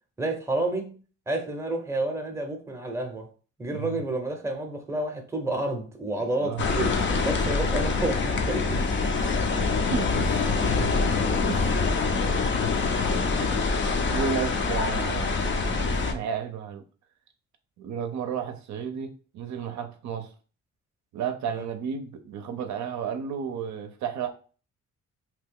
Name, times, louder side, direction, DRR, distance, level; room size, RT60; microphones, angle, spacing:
voice 1, 0.2-1.0 1.3-3.3 3.6-7.0 7.2-8.8 11.0-11.3 21.5-21.6, right 2 dB, 10° right, 0.7 m, -30 dB
voice 2, 3.7-4.0 6.4-6.6 8.7-9.2 9.9-10.9 11.5-12.3 13.4-13.5 14.1-15.4 15.7-16.8 17.8-20.3 21.1-24.3, right 7 dB, 65° right, 0.5 m, -33 dB
sound 1, 6.6-16.1, left 4 dB, 40° left, 0.5 m, -25 dB
2.8 x 2.3 x 3.4 m
cardioid pair, 90°, 30 cm